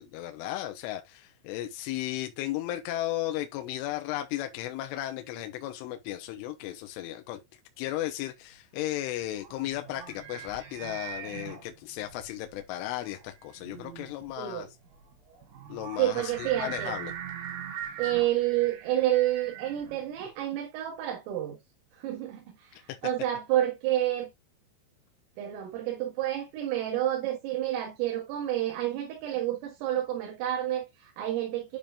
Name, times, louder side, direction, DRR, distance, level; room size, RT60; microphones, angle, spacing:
voice 1, 0.0-7.4 7.8-14.7 15.7-17.1, left 14 dB, 85° left, 3.2 m, -35 dB
sound 1, 8.8-20.3, right 8 dB, 70° right, 4.9 m, -42 dB
voice 2, 16.0-17.0 18.0-21.6 22.0-24.3 25.4-31.8, right 13 dB, 85° right, 4.3 m, -29 dB
10.5 x 5.3 x 2.4 m
omnidirectional pair, 5.8 m